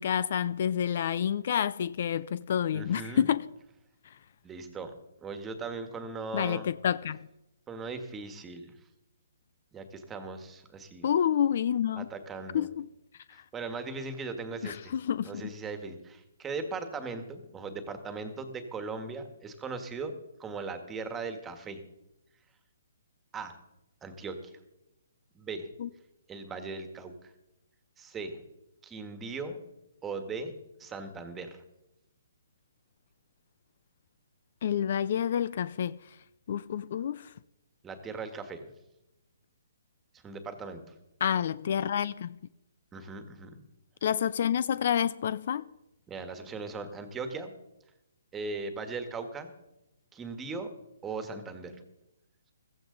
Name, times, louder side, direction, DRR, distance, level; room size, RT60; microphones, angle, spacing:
voice 1, 0.0-3.4 6.3-7.3 11.0-12.1 12.5-12.9 14.6-15.5 25.8-25.9 34.6-36.0 36.5-37.3 41.2-42.3 44.0-45.7, left 9 dB, 55° left, 0.4 m, -28 dB
voice 2, 2.7-3.3 4.4-4.9 5.2-6.7 7.7-8.8 9.7-11.1 11.9-12.7 13.3-14.9 15.2-21.8 23.3-23.6 24.0-24.5 25.3-25.7 26.3-27.3 28.0-28.4 28.8-29.6 30.0-30.5 30.8-31.6 37.8-38.7 40.1-40.8 42.9-43.6 46.1-47.5 48.3-49.5 50.1-50.7 51.0-51.7, right 4 dB, 15° right, 1.6 m, -39 dB
15.5 x 15.0 x 4.0 m
hypercardioid pair, 150°, 0 cm